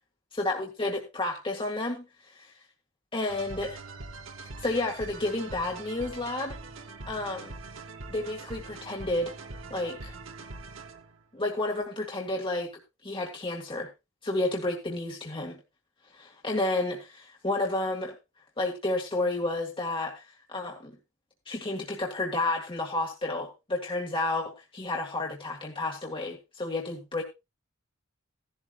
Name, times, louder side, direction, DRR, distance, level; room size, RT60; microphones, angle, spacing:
voice 1, 0.4-2.1 2.4-2.5 3.1-3.8 4.6-6.6 7.1-7.5 8.1-9.3 9.7-10.1 11.3-12.7 13.0-13.9 14.2-15.6 16.1-18.2 18.6-20.2 20.5-21.0 21.5-27.2, left 2 dB, 25° left, -1 dB, 2.0 m, -31 dB
sound 1, 3.3-11.2, right 3 dB, 75° right, 1.4 m, -43 dB
16.0 x 12.0 x 2.4 m, 0.24 s
head